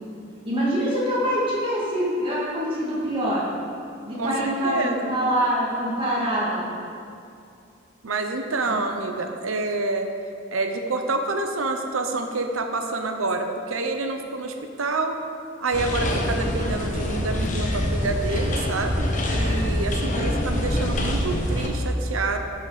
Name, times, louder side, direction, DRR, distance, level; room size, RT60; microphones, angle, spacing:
voice 1, 0.4-3.5 4.0-6.7 8.7-8.8 20.0-20.7, equal, 25° right, -7 dB, 2.1 m, -25 dB
voice 2, 4.2-5.2 8.0-10.1 10.5-15.2 15.6-22.4, right 3 dB, 90° right, 5 dB, 0.8 m, -27 dB
sound 1, 15.7-21.7, left 1 dB, 40° left, 1.0 m, -25 dB
12.0 x 5.8 x 5.0 m, 2.5 s
head